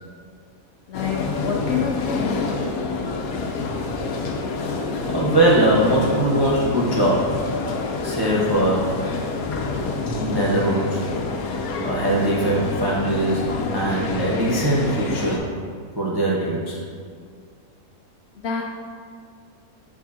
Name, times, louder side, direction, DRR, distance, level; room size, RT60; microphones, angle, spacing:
sound 1, 0.9-15.4, left 3 dB, 85° left, 1.1 m, -27 dB
voice 1, 0.9-2.5 18.4-18.6, left 6 dB, 65° left, 0 dB, 0.7 m, -27 dB
voice 2, 5.0-7.4 8.0-8.9 10.2-11.0 11.8-13.5 13.7-15.5 16.0-16.8, right 1 dB, 35° right, -5 dB, 0.4 m, -21 dB
8.4 x 4.5 x 2.7 m, 2.1 s
omnidirectional pair, 1.5 m